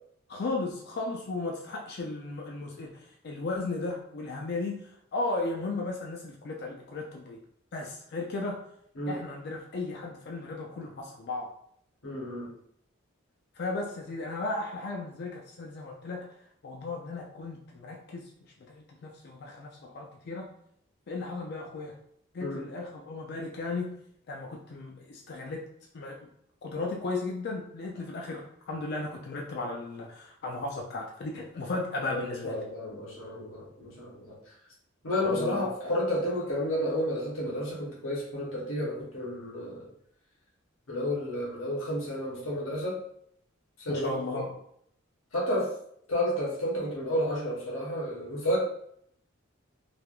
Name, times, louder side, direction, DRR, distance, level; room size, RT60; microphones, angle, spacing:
voice 1, 0.3-2.9 3.2-4.8 5.1-7.4 7.7-8.6 9.1-11.5 13.6-16.2 16.6-18.3 18.7-20.5 21.1-22.0 22.3-23.9 24.3-25.6 25.9-26.3 26.6-32.6 35.2-35.7 43.9-44.5, left 3 dB, 50° left, 0 dB, 0.4 m, -35 dB
voice 2, 12.0-12.5 22.4-22.6 32.1-34.3 35.0-39.9 40.9-43.0 43.8-44.4 45.3-45.7 46.1-48.6, left 1 dB, 80° left, -5 dB, 1.0 m, -31 dB
3.3 x 2.2 x 2.4 m, 0.70 s
head